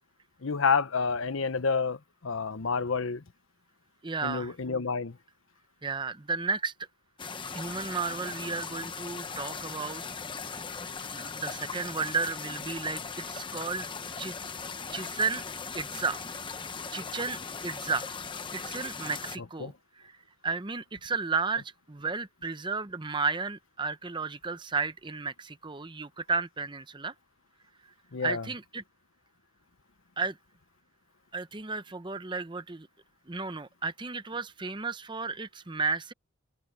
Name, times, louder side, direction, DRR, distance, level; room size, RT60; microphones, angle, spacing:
voice 1, 0.4-3.2 4.2-5.2 19.6-19.7 28.1-28.5, left 5 dB, 70° left, 0.8 m, -29 dB
voice 2, 4.0-4.5 5.8-6.7 7.5-10.0 11.1-13.9 14.2-14.5 14.9-15.4 15.7-16.2 16.9-18.1 18.5-20.1 20.4-27.1 28.2-28.8 30.2-30.4 31.3-32.9 33.3-36.1, right 4 dB, 20° right, 0.7 m, -33 dB
sound 1, 7.2-19.4, left 5 dB, 25° left, 0.9 m, -39 dB
head